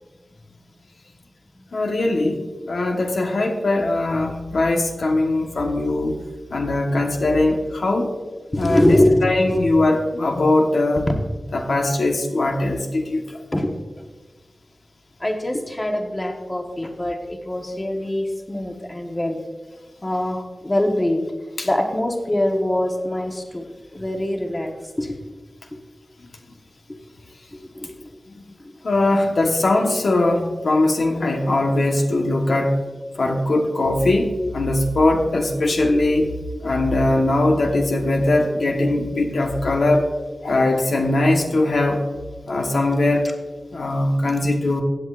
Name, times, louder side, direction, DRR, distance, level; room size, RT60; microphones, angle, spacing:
voice 1, 1.7-2.4 2.7-6.2 6.5-8.1 8.6-9.0 9.2-11.1 11.5-13.2 21.6-21.7 28.8-32.8 33.1-36.3 36.6-40.1 40.4-42.0 42.5-43.3 43.7-44.8, left 2 dB, 85° left, 2 dB, 1.1 m, -20 dB
voice 2, 8.5-9.6 13.5-13.7 15.2-19.4 20.0-21.2 21.6-23.6 23.9-24.7 25.0-25.2 27.5-28.1 43.2-43.3, left 1 dB, 25° left, 3 dB, 1.1 m, -23 dB
16.0 x 8.2 x 2.5 m, 1.3 s
wide cardioid pair, 85°, 0 cm